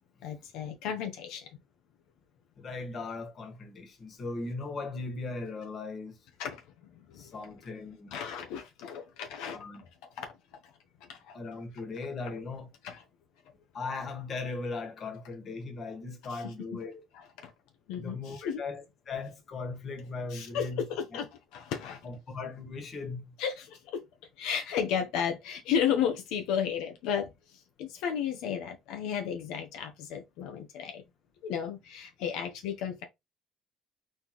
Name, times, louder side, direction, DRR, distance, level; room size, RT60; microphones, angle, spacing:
voice 1, 0.2-1.5 6.4-7.3 8.1-9.6 10.2-10.3 10.6-10.7 11.0-11.4 12.8-13.0 16.3-16.8 17.1-17.5 17.9-18.6 20.3-22.1 23.4-24.0 24.4-31.0 31.4-33.0, left 8 dB, 85° left, 1.0 m, -34 dB
voice 2, 2.6-6.1 7.2-8.1 9.5-9.8 11.3-12.7 13.7-17.0 18.0-20.8 22.0-23.2, left 3 dB, 40° left, 1.7 m, -38 dB
4.4 x 3.7 x 3.1 m
cardioid pair, 115°, 0 cm